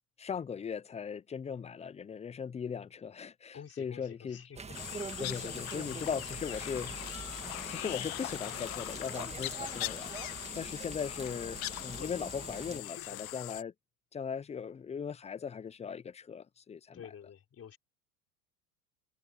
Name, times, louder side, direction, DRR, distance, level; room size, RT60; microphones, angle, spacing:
voice 1, 0.2-4.4 5.2-7.0 7.7-13.7 14.1-17.0, left 6 dB, 15° left, 0.5 m, -39 dB
voice 2, 3.5-5.0 5.4-5.5 12.0-13.2 16.9-17.8, left 8 dB, 35° left, 4.7 m, -50 dB
sound 1, 4.6-12.8, right 4 dB, 15° right, 1.8 m, -44 dB
sound 2, 4.7-13.6, left 17 dB, 90° left, 0.9 m, -41 dB
supercardioid pair, 95°, 41 cm